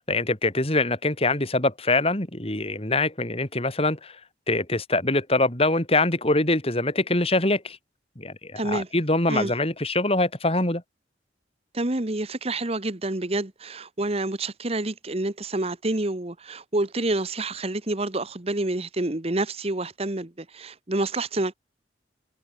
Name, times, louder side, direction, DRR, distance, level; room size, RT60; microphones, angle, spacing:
voice 1, 0.1-4.1 4.5-7.8 8.2-10.8, left 2 dB, 35° left, 4.0 m, -24 dB
voice 2, 8.6-8.9 9.3-9.5 11.7-21.5, right 2 dB, 35° right, 1.3 m, -28 dB
head